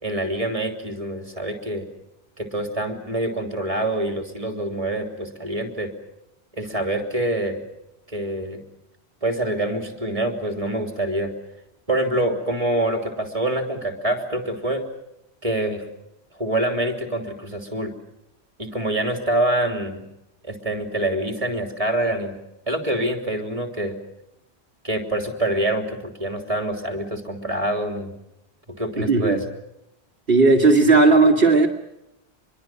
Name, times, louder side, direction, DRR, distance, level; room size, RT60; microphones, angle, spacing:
voice 1, 0.0-1.9 2.4-5.9 6.5-7.6 8.1-8.6 9.2-11.3 11.9-14.8 15.4-15.8 16.4-17.9 18.6-20.1 20.4-22.4 22.7-24.0 24.8-28.1 28.8-29.4, right 1 dB, 30° right, 5 dB, 3.4 m, -25 dB
voice 2, 29.0-29.4 30.3-31.7, right 3 dB, 60° right, -4 dB, 2.5 m, -15 dB
26.0 x 22.5 x 7.6 m, 0.85 s
omnidirectional pair, 1.1 m